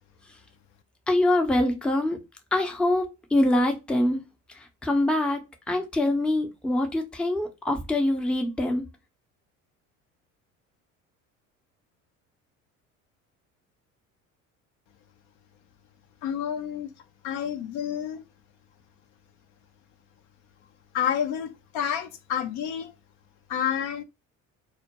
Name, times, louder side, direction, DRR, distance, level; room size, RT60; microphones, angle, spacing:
voice 1, 1.1-2.2 2.5-4.2 4.5-8.8, left 1 dB, 5° left, 0.5 m, -24 dB
voice 2, 16.2-16.9 17.2-18.2 20.9-22.9 23.5-24.0, left 9 dB, 65° left, 0.5 m, -29 dB
2.2 x 2.1 x 2.8 m
hypercardioid pair, 65°, 40 cm